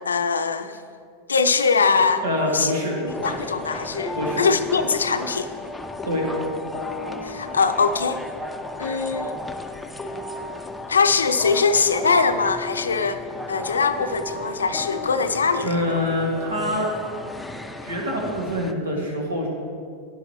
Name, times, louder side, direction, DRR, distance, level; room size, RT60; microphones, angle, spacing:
voice 1, 0.1-0.7 1.3-2.7 3.0-5.5 7.2-8.2 8.8-9.4 10.9-13.2 13.5-15.8, left 5 dB, 85° left, 9 dB, 0.5 m, -22 dB
sound 1, 2.0-18.0, left 3 dB, 20° left, 0.9 m, -36 dB
voice 2, 2.2-3.0 4.1-4.5 6.1-6.3 15.6-16.9 17.8-19.5, left 1 dB, 75° right, -1 dB, 2.2 m, -25 dB
sound 2, 3.0-18.7, left 1 dB, 5° left, 0.6 m, -37 dB
12.0 x 9.8 x 3.2 m, 2.2 s
hypercardioid pair, 90°, 0 cm